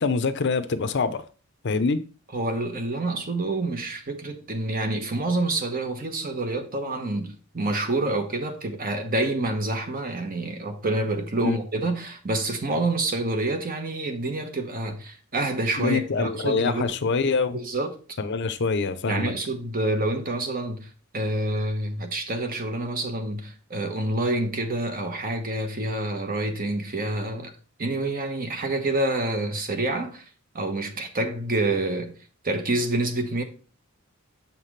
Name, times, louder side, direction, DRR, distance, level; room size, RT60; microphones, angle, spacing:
voice 1, 0.0-1.2 1.6-2.0 11.4-11.6 15.8-17.6 18.2-19.3, left 4 dB, 55° left, 0.6 m, -25 dB
voice 2, 2.3-16.9 17.5-18.2 19.1-27.5 27.8-30.2 30.5-32.1 32.4-33.4, right 2 dB, 40° right, 1.1 m, -27 dB
7.3 x 5.8 x 3.2 m
head